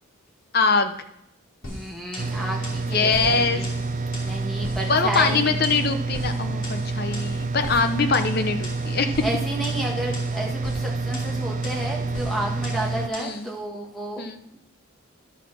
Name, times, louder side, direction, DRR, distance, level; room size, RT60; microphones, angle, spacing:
voice 1, 0.5-1.0 2.9-3.6 4.9-9.2 13.2-13.5 14.2-14.4, left 4 dB, 45° left, 8 dB, 0.7 m, -23 dB
sound 1, 1.6-13.5, left 1 dB, 75° left, 2.6 m, -40 dB
voice 2, 1.6-3.7 4.2-5.6 7.1-7.5 9.2-14.2, right 1 dB, ahead, -2 dB, 1.5 m, -31 dB
sound 2, 2.2-13.1, right 3 dB, 35° right, 0.4 m, -28 dB
11.5 x 4.1 x 6.0 m, 0.80 s
head